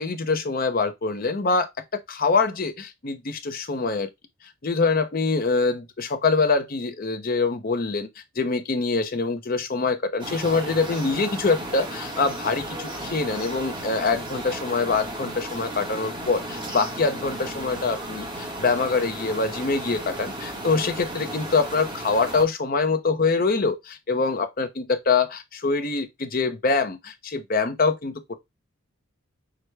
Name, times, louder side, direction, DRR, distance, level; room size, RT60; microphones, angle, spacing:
voice 1, 0.0-1.7 2.1-4.1 4.6-8.1 8.4-28.2, left 4 dB, 40° left, 0.6 m, -24 dB
sound 1, 10.2-22.4, right 1 dB, 20° right, 1.1 m, -34 dB
5.9 x 2.2 x 3.2 m
head